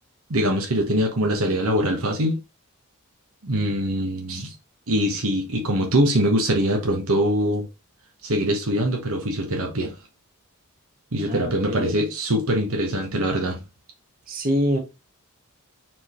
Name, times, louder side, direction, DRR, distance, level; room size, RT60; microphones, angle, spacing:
voice 1, 0.3-2.4 3.4-4.5 4.9-7.7 8.2-9.9 11.1-13.6, equal, 70° right, 1.2 m, -23 dB
voice 2, 11.2-11.9 14.3-14.8, equal, 40° right, 1.2 m, -25 dB
4.5 x 3.7 x 3.1 m
head